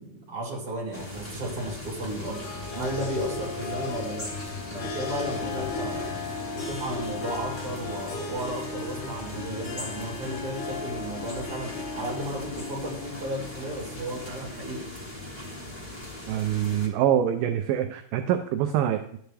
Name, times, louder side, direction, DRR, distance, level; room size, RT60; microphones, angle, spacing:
voice 1, 0.0-2.4 2.7-4.3 4.7-6.1 6.6-14.9, right 1 dB, 40° right, -3 dB, 3.6 m, -34 dB
sound 1, 0.9-16.9, left 2 dB, 15° left, 0.9 m, -39 dB
sound 2, 1.6-7.2, left 3 dB, 70° left, 4.1 m, -50 dB
Harp, 2.3-14.5, left 4 dB, 90° left, 4.3 m, -37 dB
voice 2, 16.3-19.2, right 10 dB, 80° right, 7 dB, 2.0 m, -25 dB
11.5 x 9.1 x 3.4 m, 0.66 s
omnidirectional pair, 4.5 m